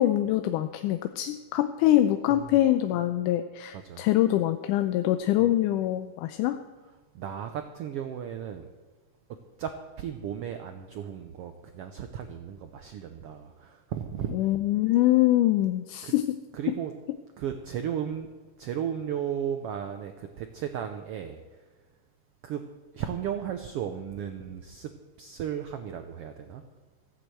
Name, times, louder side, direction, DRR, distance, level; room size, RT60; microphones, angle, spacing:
voice 1, 0.0-6.6 14.3-16.4 16.7-16.8, left 14 dB, 85° left, 9 dB, 2.1 m, -24 dB
voice 2, 2.3-2.6 3.7-4.0 5.4-5.6 7.1-8.7 9.6-9.7 10.0-14.4 16.0-16.2 16.5-16.9 17.4-18.3 18.6-21.4 22.4-22.6 22.9-24.9 25.2-26.6, right 9 dB, 90° right, 6 dB, 1.3 m, -35 dB
15.0 x 8.4 x 7.7 m, 1.3 s
omnidirectional pair, 3.6 m